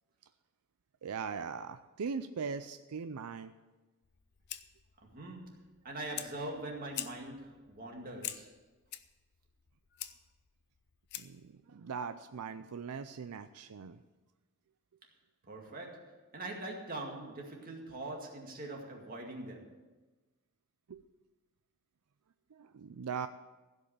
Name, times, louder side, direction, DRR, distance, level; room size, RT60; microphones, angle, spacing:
voice 1, 1.0-3.5 11.2-11.4 11.7-14.0 20.9-21.0 22.5-23.3, right 6 dB, 85° right, 10 dB, 0.5 m, -40 dB
Fire, 4.0-11.5, left 12 dB, 50° left, 0.6 m, -47 dB
voice 2, 5.0-8.6 15.5-19.9, right 2 dB, 40° right, 1 dB, 2.1 m, -43 dB
16.0 x 5.5 x 8.6 m, 1.2 s
head